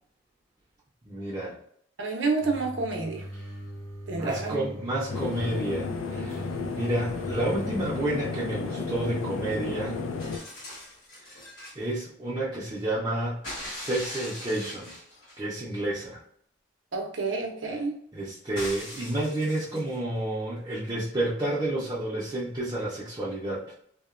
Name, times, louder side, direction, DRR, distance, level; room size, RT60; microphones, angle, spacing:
voice 1, 1.0-1.6 4.1-6.5 6.7-10.1 11.3-11.4 11.8-14.9 15.4-16.2 18.1-23.6, right 1 dB, 25° right, -7 dB, 0.5 m, -30 dB
voice 2, 2.0-3.2 4.1-4.8 16.9-18.0, right 3 dB, 70° right, 2 dB, 0.6 m, -29 dB
sound 1, 2.4-7.9, right 1 dB, 10° left, 0.7 m, -41 dB
sound 2, 5.1-10.4, left 4 dB, 90° left, 0.4 m, -33 dB
sound 3, 10.2-11.8 13.4-15.4 18.5-19.9 21.2-21.3, left 1 dB, 65° left, 1.4 m, -40 dB
2.9 x 2.1 x 2.4 m, 0.66 s
head